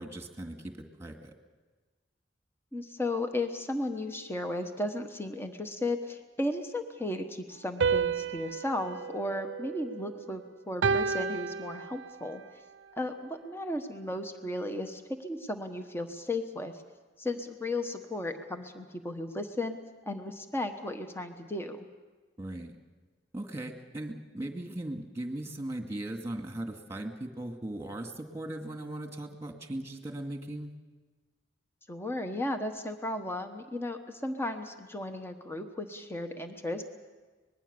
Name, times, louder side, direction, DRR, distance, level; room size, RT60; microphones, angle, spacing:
voice 1, 0.0-1.3 22.4-22.7 23.3-30.7, right 1 dB, 15° right, 4 dB, 2.1 m, -38 dB
voice 2, 2.7-12.4 13.0-16.7 17.2-19.8 20.0-21.9 31.9-36.8, left 1 dB, 15° left, 6 dB, 1.2 m, -35 dB
sound 1, 7.8-10.3 10.8-12.4, right 5 dB, 85° right, 0.6 m, -31 dB
24.5 x 20.5 x 6.9 m, 1.3 s
head